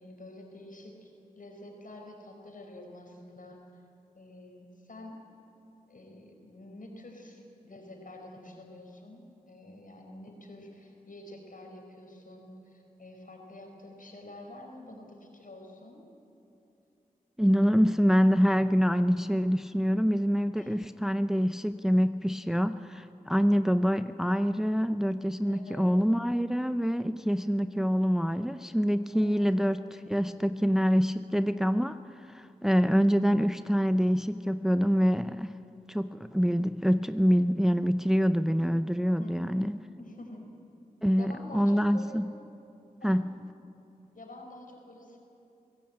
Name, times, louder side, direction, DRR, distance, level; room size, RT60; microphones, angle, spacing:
voice 1, 0.0-3.6 4.1-5.2 5.9-16.0 20.6-20.8 25.5-25.9 29.1-29.7 39.2-40.5 41.2-42.2 43.0-43.3 44.1-45.2, left 1 dB, 65° left, 2 dB, 4.8 m, -48 dB
voice 2, 17.4-35.5 35.9-39.8 41.0-42.3 43.0-43.4, equal, 5° right, 11 dB, 0.6 m, -26 dB
24.0 x 16.5 x 8.8 m, 2.8 s
cardioid pair, 45°, 15 cm